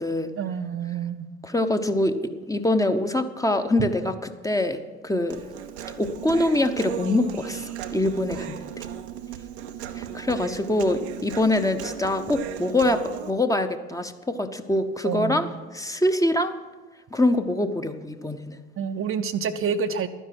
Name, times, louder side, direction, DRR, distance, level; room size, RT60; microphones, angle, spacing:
voice 1, 0.4-1.3 3.8-3.9 15.0-15.5 18.8-20.1, right 6 dB, 40° right, 8 dB, 0.7 m, -28 dB
voice 2, 1.4-2.2 2.5-5.4 6.0-8.6 9.9-15.5 15.7-16.6 17.1-18.5, left 1 dB, 10° left, 7 dB, 0.9 m, -24 dB
Human voice, 5.3-13.3, right 9 dB, 80° right, 0.8 m, -36 dB
12.0 x 10.0 x 6.0 m, 1.3 s
figure-of-eight pair, 50°, 32 cm